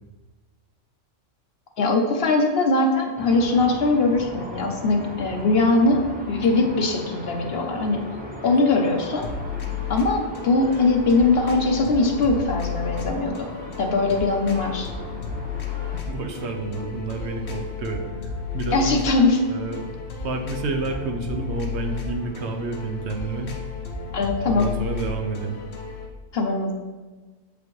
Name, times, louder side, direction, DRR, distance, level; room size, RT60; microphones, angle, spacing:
voice 1, 1.8-8.0 8.4-9.2 9.9-13.3 13.8-14.9 18.7-19.4 24.1-24.7 26.3-26.7, left 3 dB, 60° left, 3 dB, 0.9 m, -21 dB
sound 1, 3.2-16.0, equal, 10° right, 0.5 m, -38 dB
sound 2, 9.2-26.1, left 6 dB, 75° left, 1.3 m, -33 dB
voice 2, 16.1-18.9 19.5-23.5 24.5-25.6, right 3 dB, 65° right, 4 dB, 0.9 m, -30 dB
6.9 x 5.0 x 3.1 m, 1.3 s
omnidirectional pair, 1.3 m